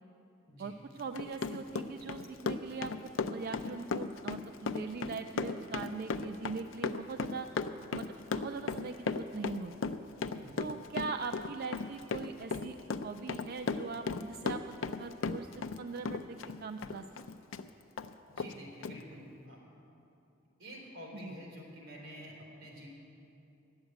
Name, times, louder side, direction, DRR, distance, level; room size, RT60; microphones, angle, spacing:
voice 1, 0.6-7.5 7.9-8.1 8.3-9.7 10.6-12.8 13.0-14.6 15.0-15.5 15.8-17.0 21.1-21.3, right 4 dB, 50° right, 7 dB, 0.3 m, -41 dB
Run, 1.0-15.8 16.1-17.7 18.0-18.1 18.4-18.5 18.8-18.9, left 4 dB, 70° left, 0.5 m, -36 dB
voice 2, 18.3-19.6 20.6-22.9, equal, 75° right, -4 dB, 3.8 m, -48 dB
11.0 x 8.0 x 9.2 m, 2.8 s
head